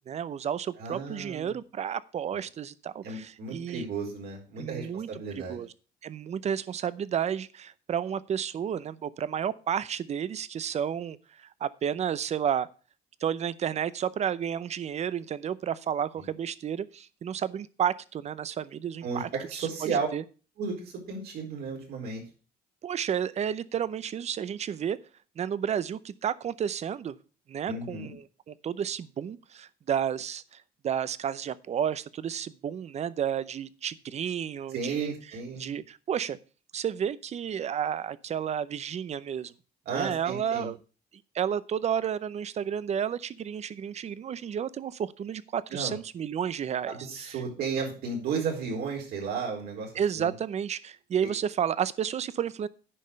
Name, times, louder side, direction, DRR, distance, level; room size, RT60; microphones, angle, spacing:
voice 1, 0.1-3.9 4.6-5.1 5.3-5.7 6.0-12.7 13.2-19.3 19.8-20.2 22.8-25.0 25.4-27.2 27.5-35.1 35.6-36.4 36.7-39.5 39.9-40.8 41.3-47.0 49.9-52.7, right 8 dB, 40° right, 18 dB, 0.6 m, -31 dB
voice 2, 0.8-1.6 3.0-5.6 16.2-16.3 19.0-20.1 20.6-22.2 27.7-28.1 34.7-35.7 39.9-40.7 45.7-45.9 46.9-50.3 51.2-51.3, right 5 dB, 70° right, 0 dB, 4.4 m, -34 dB
9.8 x 5.4 x 6.5 m, 0.36 s
cardioid pair, 110°, 17 cm